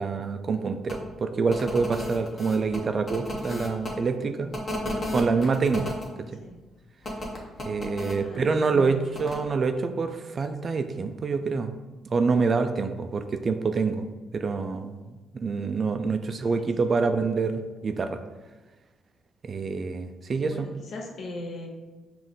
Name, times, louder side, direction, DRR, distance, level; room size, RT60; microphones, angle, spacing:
voice 1, 0.0-4.5 5.1-6.0 7.6-11.7 12.1-14.1 14.3-18.2 19.4-20.7, right 4 dB, 45° right, 8 dB, 0.3 m, -26 dB
sound 1, 0.9-1.0 1.5-3.9 4.5-6.1 7.0-8.2 9.1-9.4, left 1 dB, 40° left, 1.0 m, -33 dB
voice 2, 8.2-9.0 20.4-21.7, left 2 dB, 70° left, 0 dB, 0.9 m, -39 dB
5.2 x 2.5 x 3.6 m, 1.2 s
cardioid pair, 90°, 0 cm